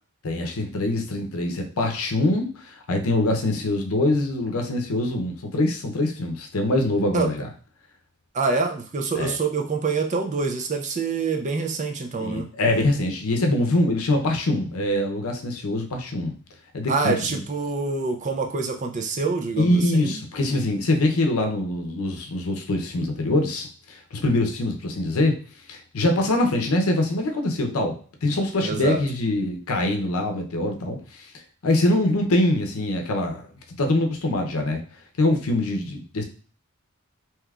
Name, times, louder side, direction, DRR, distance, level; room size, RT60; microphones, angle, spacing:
voice 1, 0.2-7.5 9.2-9.4 12.2-16.3 16.7-17.4 19.6-25.4 25.7-31.3 31.6-33.5 33.8-34.8 35.2-36.2, left 1 dB, 75° left, 3 dB, 0.6 m, -24 dB
voice 2, 8.3-12.5 16.9-20.2 28.6-29.0, right 4 dB, 35° right, 4 dB, 0.4 m, -26 dB
3.4 x 2.9 x 2.3 m, 0.39 s
head